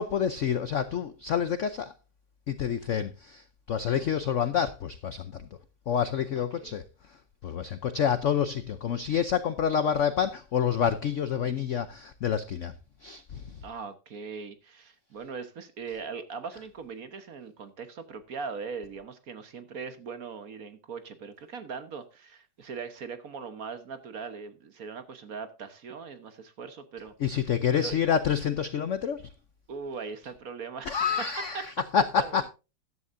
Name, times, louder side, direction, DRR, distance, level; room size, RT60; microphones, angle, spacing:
voice 1, 0.0-1.9 2.5-5.5 5.9-6.8 7.4-12.7 13.0-13.6 27.2-29.3 30.9-32.5, left 8 dB, 75° left, 0.6 m, -28 dB
voice 2, 6.4-6.7 13.6-27.4 27.7-28.0 29.7-31.0 31.5-31.6 32.2-32.4, right 5 dB, 50° right, 1.4 m, -40 dB
14.0 x 11.0 x 2.6 m
omnidirectional pair, 2.1 m